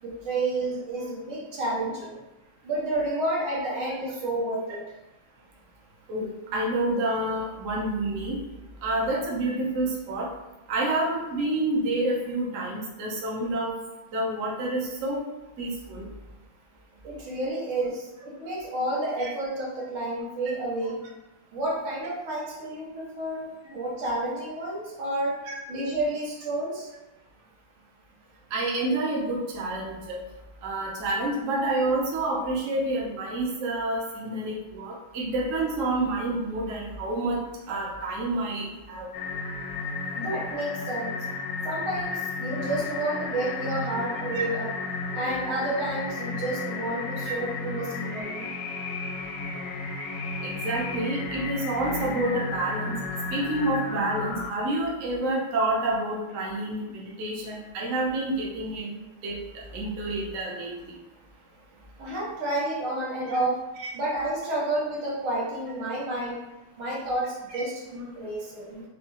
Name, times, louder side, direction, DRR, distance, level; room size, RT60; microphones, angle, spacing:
voice 1, 0.0-2.2 2.6-4.8 17.0-21.0 21.5-25.3 25.7-26.9 40.1-41.3 41.7-44.7 45.1-48.5 62.0-63.6 63.9-66.4 66.8-68.8, right 1 dB, 90° right, -5 dB, 1.8 m, -30 dB
voice 2, 6.1-8.4 8.8-10.3 10.7-13.7 14.1-15.2 15.6-16.1 19.2-19.3 25.5-25.6 28.5-30.2 30.6-37.4 37.7-39.1 44.3-44.4 47.2-47.3 50.4-53.0 53.3-58.9 59.2-60.9 63.3-63.4 63.8-63.9 67.5-67.6, right 2 dB, 65° right, -3 dB, 0.8 m, -28 dB
sound 1, 39.1-54.5, left 3 dB, 80° left, 1.4 m, -33 dB
4.1 x 2.3 x 2.8 m, 1.0 s
omnidirectional pair, 2.3 m